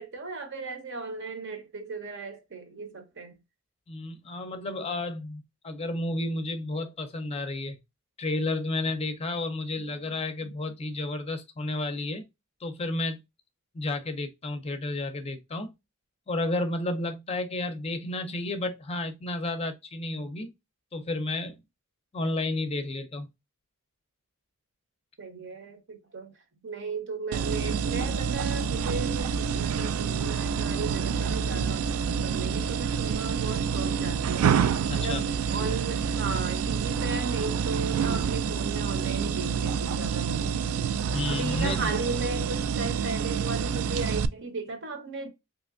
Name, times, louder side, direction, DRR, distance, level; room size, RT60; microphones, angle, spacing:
voice 1, 0.0-3.4 9.8-10.0 10.4-10.5 25.2-26.3 26.6-45.3, right 3 dB, 60° right, 0.8 m, -36 dB
voice 2, 3.9-7.8 8.2-12.3 12.6-13.2 13.7-15.7 16.3-20.5 20.9-21.6 22.1-23.3 34.9-35.2 41.1-41.9, left 2 dB, 30° left, 0.5 m, -31 dB
sound 1, 27.3-44.3, right 6 dB, 85° right, 0.3 m, -28 dB
3.2 x 2.8 x 2.4 m
head